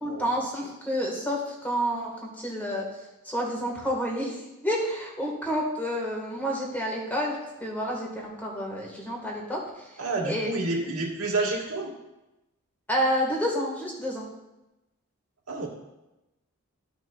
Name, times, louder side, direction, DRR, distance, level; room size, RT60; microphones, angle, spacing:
voice 1, 0.0-2.1 2.4-2.8 3.2-4.3 4.6-7.3 7.6-9.9 10.2-10.5 12.9-14.3, equal, 10° left, -2 dB, 1.6 m, -29 dB
voice 2, 10.0-11.9 15.5-15.7, right 2 dB, 85° right, -2 dB, 1.8 m, -29 dB
13.5 x 6.1 x 2.4 m, 0.97 s
head